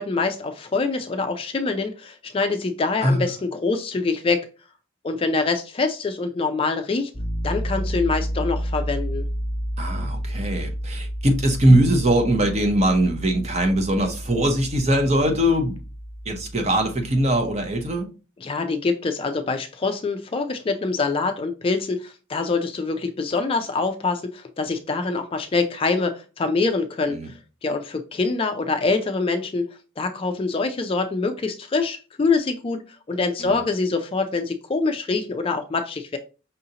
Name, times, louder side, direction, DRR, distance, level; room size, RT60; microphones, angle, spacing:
voice 1, 0.0-4.5 5.0-7.1 7.4-9.3 18.4-29.7 30.0-36.2, left 3 dB, 25° left, 0.3 m, -25 dB
Piano, 7.1-18.0, equal, 5° left, 0.9 m, -31 dB
voice 2, 9.8-15.8 16.3-18.1 27.2-27.3 33.4-33.6, right 1 dB, 35° right, 0.7 m, -21 dB
5.5 x 2.6 x 2.8 m
head